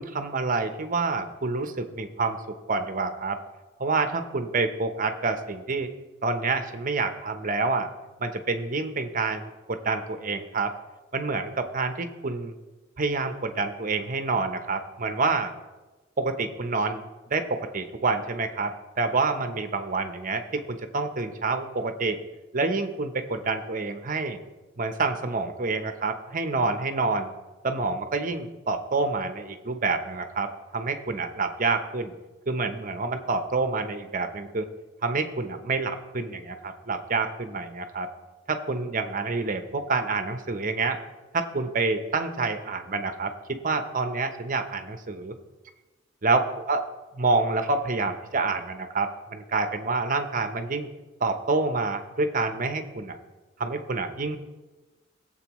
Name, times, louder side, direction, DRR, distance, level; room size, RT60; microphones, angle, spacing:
voice 1, 0.0-2.4 2.7-3.4 3.8-5.9 6.2-7.9 8.2-10.7 11.1-12.5 13.0-15.5 16.2-17.0 17.3-22.2 22.5-24.4 24.8-27.3 27.6-32.1 32.5-34.7 35.0-38.1 38.5-41.0 41.3-45.4 46.2-46.8 47.2-50.9 51.2-53.2 53.6-54.4, right 3 dB, 45° right, 7 dB, 0.9 m, -27 dB
17.0 x 7.8 x 3.1 m, 1.2 s
head